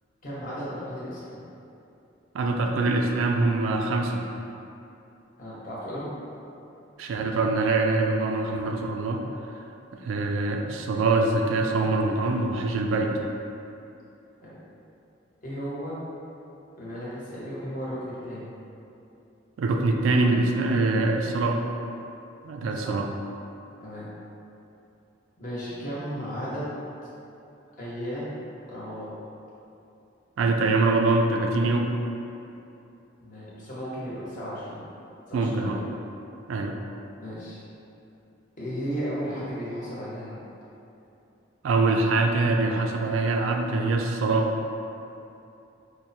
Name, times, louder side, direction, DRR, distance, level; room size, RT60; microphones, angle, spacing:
voice 1, 0.2-1.4 5.4-6.1 14.4-14.6 15.4-16.0 16.8-18.5 22.8-23.0 23.8-24.1 25.4-26.7 27.8-28.4 28.7-29.1 33.2-34.8 35.3-35.7 37.2-37.6 38.6-40.4, equal, 45° left, -9 dB, 0.9 m, -34 dB
voice 2, 2.3-4.3 7.0-9.2 9.9-13.1 19.6-21.6 22.4-23.1 30.4-31.9 35.3-35.8 36.5-36.8 41.6-44.5, right 3 dB, 90° right, 3 dB, 0.3 m, -24 dB
4.5 x 2.1 x 2.7 m, 2.8 s
head